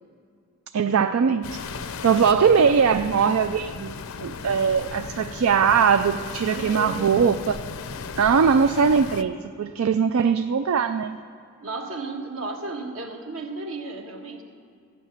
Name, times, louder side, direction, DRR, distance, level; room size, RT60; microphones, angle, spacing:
voice 1, 0.7-3.9 4.2-7.6 8.2-11.2, right 6 dB, 85° right, 9 dB, 0.4 m, -21 dB
sound 1, 1.4-9.2, left 4 dB, 85° left, 0.6 m, -36 dB
voice 2, 6.5-7.1 11.6-14.4, right 2 dB, 70° right, 2 dB, 1.5 m, -34 dB
14.5 x 5.8 x 9.4 m, 2.4 s
head